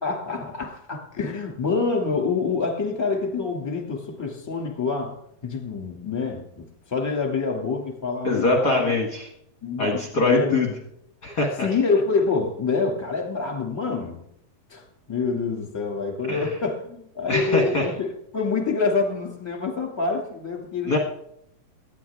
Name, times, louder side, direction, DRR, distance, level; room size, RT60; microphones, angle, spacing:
voice 1, 0.0-5.2 5.4-8.8 9.6-10.7 11.6-14.2 14.7-21.0, left 4 dB, 10° left, 2 dB, 1.8 m, -26 dB
voice 2, 8.2-9.3 9.8-10.7 11.2-11.7 16.3-16.4 17.3-17.9 20.9-21.0, left 2 dB, 45° left, 2 dB, 1.4 m, -22 dB
18.0 x 13.0 x 3.6 m, 0.74 s
omnidirectional pair, 3.7 m